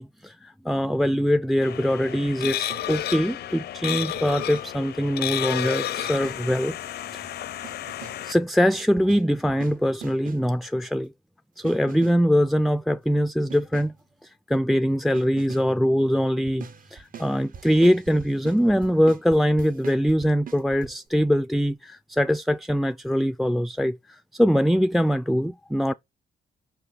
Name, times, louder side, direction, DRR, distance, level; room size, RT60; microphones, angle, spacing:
voice 1, 0.0-6.8 7.1-7.3 8.2-11.1 11.6-13.9 14.2-25.9, equal, ahead, 0.3 m, -23 dB
sound 1, 1.6-8.3, left 12 dB, 80° left, 0.5 m, -31 dB
sound 2, 2.4-3.1 4.1-4.9 6.0-6.6 7.6-8.4 9.0-10.6 11.6-12.3 13.5-14.1 15.1-15.8 16.5-20.9, right 8 dB, 55° right, 1.1 m, -44 dB
6.0 x 5.6 x 4.0 m
cardioid pair, 105°, 17 cm